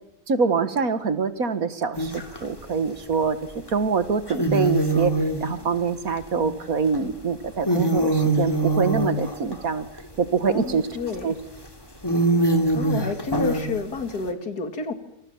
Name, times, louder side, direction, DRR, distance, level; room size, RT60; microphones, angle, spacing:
voice 1, 0.3-3.4 3.7-5.1 5.4-9.9 10.2-10.9 11.2-11.3, right 5 dB, 65° right, 11 dB, 2.1 m, -24 dB
sound 1, 2.0-2.5 3.7-3.8 4.3-7.1 7.4-10.4 11.1-11.2 11.6-11.7 12.0-14.2, right 1 dB, 15° left, 2.9 m, -24 dB
voice 2, 10.4-11.3 12.7-14.9, left 4 dB, 80° left, 8 dB, 3.0 m, -30 dB
27.5 x 27.0 x 7.3 m, 0.82 s
omnidirectional pair, 1.6 m